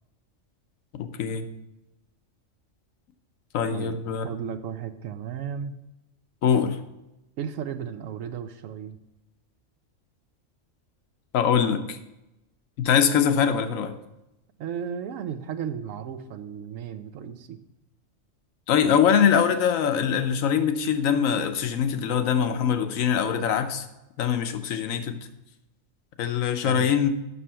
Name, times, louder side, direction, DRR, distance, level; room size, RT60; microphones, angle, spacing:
voice 1, 0.9-1.5 3.5-4.3 6.4-6.8 11.3-12.0 12.8-13.9 18.7-23.9 24.2-25.2 26.2-27.1, left 8 dB, 85° left, 8 dB, 1.1 m, -23 dB
voice 2, 4.2-5.7 7.4-9.0 14.6-17.6 26.6-26.9, right 8 dB, 85° right, 8 dB, 1.0 m, -34 dB
7.0 x 6.3 x 5.5 m, 0.95 s
omnidirectional pair, 1.3 m